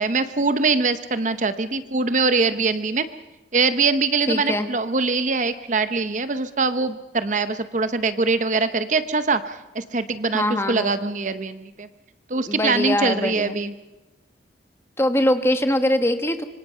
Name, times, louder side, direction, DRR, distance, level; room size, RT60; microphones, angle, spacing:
voice 1, 0.0-3.1 3.5-11.9 12.3-13.7, right 4 dB, 45° right, 11 dB, 0.8 m, -23 dB
voice 2, 4.3-4.7 10.3-10.9 12.5-13.6 15.0-16.4, left 1 dB, 15° left, 7 dB, 1.3 m, -22 dB
25.5 x 24.5 x 5.6 m, 1.1 s
head